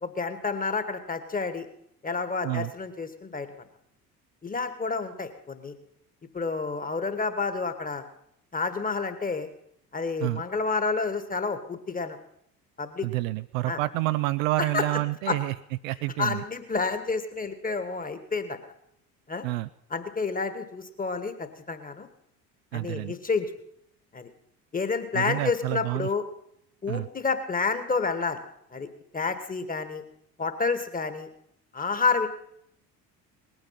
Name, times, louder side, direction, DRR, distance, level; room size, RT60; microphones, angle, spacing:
voice 1, 0.0-1.7 2.0-3.5 4.4-5.7 6.3-8.0 8.5-9.5 9.9-12.2 12.8-13.1 13.7-13.8 14.6-14.8 15.3-15.4 16.2-18.6 19.3-19.4 19.9-22.1 22.7-23.5 24.1-24.3 24.7-26.2 26.8-28.4 28.7-28.9 29.1-30.0 30.4-31.3 31.7-32.3, left 4 dB, 15° left, 10 dB, 1.5 m, -29 dB
voice 2, 13.0-15.5 15.8-16.4 19.4-19.7 22.7-23.1 25.1-26.1 26.9-27.1, right 19 dB, 55° right, 13 dB, 0.5 m, -28 dB
19.5 x 9.3 x 5.7 m, 0.73 s
figure-of-eight pair, 60°, 49 cm